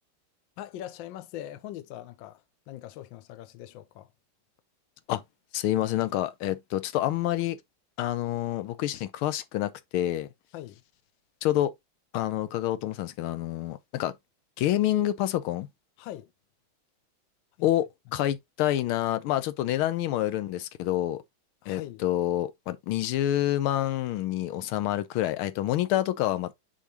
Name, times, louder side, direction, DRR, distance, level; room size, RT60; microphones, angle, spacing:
voice 1, 0.6-4.1 10.5-10.8 16.0-16.3 17.6-17.7 21.6-22.0, left 12 dB, 70° left, 1.4 m, -42 dB
voice 2, 5.5-7.6 8.0-10.3 11.4-11.7 12.1-14.1 14.6-15.7 17.6-17.9 18.1-21.2 21.7-26.5, left 13 dB, 90° left, 1.6 m, -27 dB
7.2 x 4.7 x 2.8 m
omnidirectional pair, 2.2 m